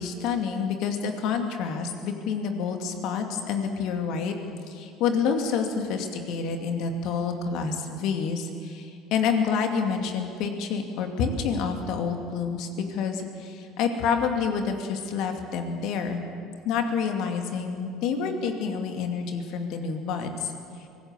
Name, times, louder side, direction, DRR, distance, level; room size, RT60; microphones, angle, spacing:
voice 1, 0.0-4.3 4.7-16.2 16.6-20.5, left 6 dB, 60° left, 4 dB, 2.6 m, -28 dB
24.5 x 17.5 x 7.1 m, 2.5 s
hypercardioid pair, 65°, 0 cm